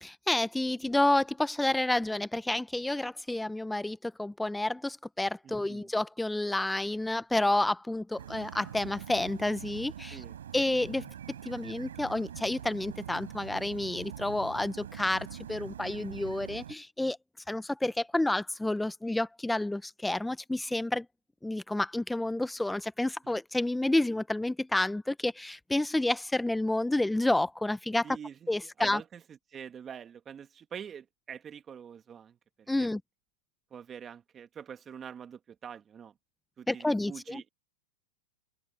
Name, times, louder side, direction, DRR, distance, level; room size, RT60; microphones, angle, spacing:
voice 1, 0.0-10.2 10.5-11.1 11.4-17.2 17.5-21.1 21.4-28.1 28.5-29.0 32.7-33.0 36.7-37.4, left 1 dB, 5° left, 0.6 m, -30 dB
voice 2, 5.4-5.9 10.1-10.4 28.0-28.5 28.8-32.9 33.7-36.1 36.6-37.5, right 8 dB, 20° right, 2.1 m, -45 dB
sound 1, 8.2-16.7, right 9 dB, 80° right, 6.0 m, -44 dB
hypercardioid pair, 130°, 0 cm